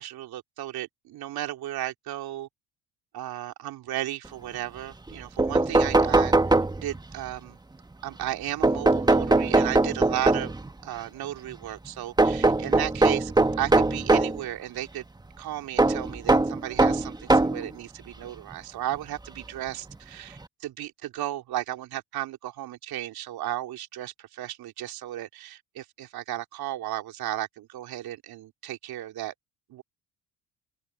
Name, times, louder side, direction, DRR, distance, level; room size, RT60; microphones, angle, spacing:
voice 1, 0.0-2.5 3.1-7.6 8.0-10.5 10.8-13.3 13.6-15.0 15.4-29.3 29.7-29.8, right 13 dB, 60° right, 3.3 m, -34 dB
sound 1, 5.1-5.2 5.4-7.1 8.6-10.7 12.2-14.4 15.8-17.7 18.5-18.6 19.9-20.0 20.4-20.5, right 2 dB, 10° right, 1.2 m, -21 dB
supercardioid pair, 80°, 41 cm